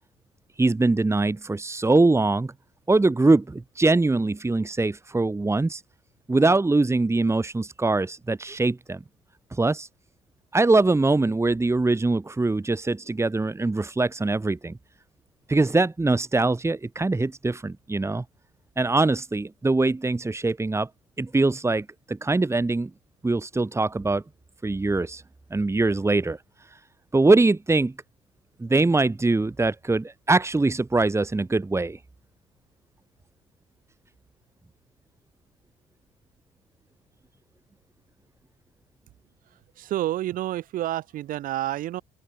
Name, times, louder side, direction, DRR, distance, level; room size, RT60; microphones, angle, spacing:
voice 1, 0.6-2.5 2.9-5.8 6.3-9.0 9.5-9.9 10.5-14.8 15.5-18.2 18.8-20.9 21.2-22.9 23.2-24.2 24.6-25.2 25.5-26.4 27.1-27.9 28.6-32.0, right 3 dB, 15° right, 2.3 m, -22 dB
voice 2, 39.8-42.0, right 14 dB, 60° right, 4.6 m, -29 dB
open air
figure-of-eight pair, 50°, 16 cm